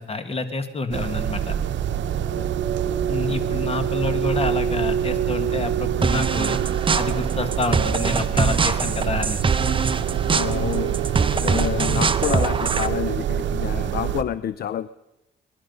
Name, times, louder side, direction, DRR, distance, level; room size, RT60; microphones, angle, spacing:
voice 1, 0.0-1.5 3.1-6.6 7.0-9.4, left 3 dB, 30° left, 10 dB, 1.7 m, -28 dB
sound 1, 0.9-14.2, right 9 dB, 70° right, 0.8 m, -25 dB
sound 2, 6.0-12.9, right 4 dB, 25° right, 0.7 m, -24 dB
voice 2, 10.3-11.0 11.3-14.9, left 10 dB, 50° left, 16 dB, 0.5 m, -28 dB
22.0 x 11.0 x 5.4 m, 0.96 s
cardioid pair, 90°, 20 cm